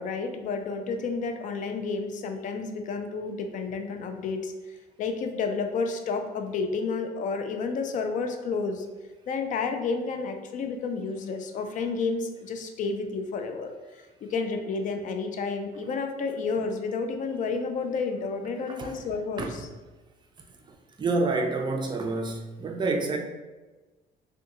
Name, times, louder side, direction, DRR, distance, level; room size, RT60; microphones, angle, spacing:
voice 1, 0.0-4.5 5.0-8.9 9.3-13.7 14.2-19.7, left 4 dB, 50° left, 6 dB, 0.4 m, -30 dB
voice 2, 21.0-23.2, right 3 dB, 25° right, 3 dB, 0.4 m, -28 dB
3.5 x 2.2 x 2.9 m, 1.2 s
cardioid pair, 110°, 17 cm